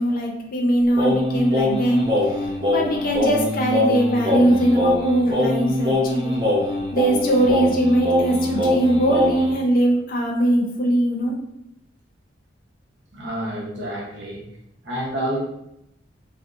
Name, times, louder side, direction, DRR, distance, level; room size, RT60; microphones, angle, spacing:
voice 1, 0.0-2.0 2.7-6.4 6.9-11.4, right 1 dB, 50° left, 0 dB, 0.5 m, -21 dB
Singing, 1.0-9.6, left 1 dB, 25° right, 0.6 m, -22 dB
voice 2, 13.1-14.4 14.8-15.4, right 1 dB, 70° right, -3 dB, 0.9 m, -28 dB
2.6 x 2.1 x 3.5 m, 0.80 s
head